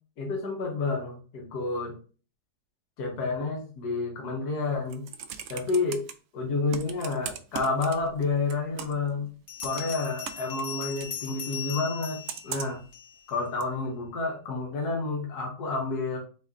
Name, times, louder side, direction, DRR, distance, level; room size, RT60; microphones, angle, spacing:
voice 1, 0.2-2.0 3.0-5.0 5.5-6.0 6.3-9.3 9.6-12.8 13.3-16.2, left 3 dB, 65° left, 1 dB, 1.6 m, -30 dB
Computer keyboard, 4.7-6.1 6.7-8.2 8.5-9.1 9.6-11.1 12.3-12.9 13.6-13.7, right 8 dB, 85° right, 0.6 m, -38 dB
Bell, 9.5-13.4, left 9 dB, 50° left, 1.1 m, -39 dB
4.0 x 3.1 x 3.6 m, 0.37 s
omnidirectional pair, 1.8 m